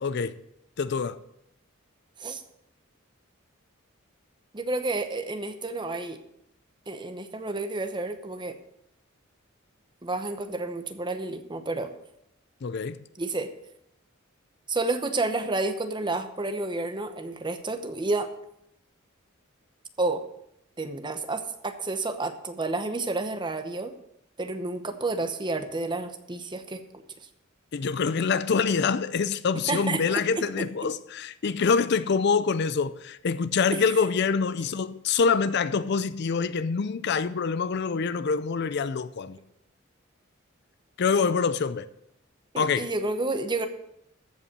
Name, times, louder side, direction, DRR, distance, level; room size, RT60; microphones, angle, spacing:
voice 1, 0.0-0.4 0.8-1.2 12.6-13.0 27.7-39.4 41.0-41.9 42.6-42.9, left 5 dB, 55° left, 0.5 m, -25 dB
voice 2, 4.5-6.2 6.9-8.6 10.0-11.9 13.2-13.5 14.7-18.3 20.0-20.2 20.8-23.9 24.4-26.8 29.7-30.6 33.9-34.1 42.5-43.7, right 2 dB, 20° right, 0.9 m, -30 dB
14.0 x 5.5 x 6.7 m
head